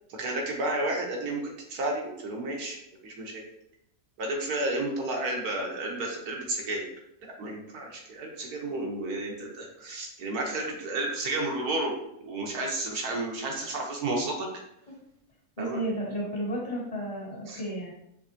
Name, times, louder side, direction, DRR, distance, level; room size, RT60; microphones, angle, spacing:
voice 1, 0.1-2.8 3.0-3.4 4.2-6.9 7.2-11.9 12.2-14.5 15.6-15.8 17.5-17.6, right 2 dB, 85° right, 0 dB, 1.6 m, -32 dB
voice 2, 15.6-17.9, right 1 dB, 45° left, -5 dB, 1.6 m, -33 dB
5.4 x 3.5 x 2.8 m, 0.79 s
omnidirectional pair, 1.6 m